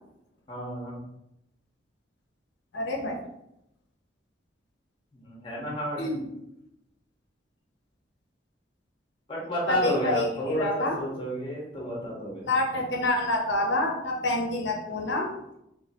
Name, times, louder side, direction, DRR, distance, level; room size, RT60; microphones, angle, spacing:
voice 1, 0.5-1.0 5.1-6.1 9.3-12.5, equal, 25° left, -4 dB, 1.2 m, -31 dB
voice 2, 2.7-3.2 6.0-6.2 9.7-11.0 12.4-15.3, left 1 dB, 70° left, 1 dB, 0.7 m, -27 dB
3.9 x 3.1 x 2.8 m, 0.83 s
head